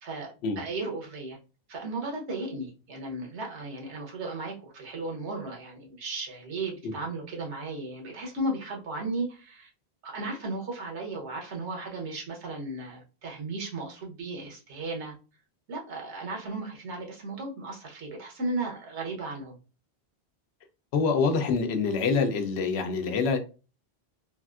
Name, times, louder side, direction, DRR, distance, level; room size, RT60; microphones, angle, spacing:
voice 1, 0.0-1.4 1.7-9.7 10.0-15.1 15.7-19.6, right 2 dB, 85° right, 1.2 m, -35 dB
voice 2, 20.9-23.4, left 4 dB, 75° left, 0.9 m, -25 dB
3.4 x 2.4 x 2.3 m
omnidirectional pair, 1.1 m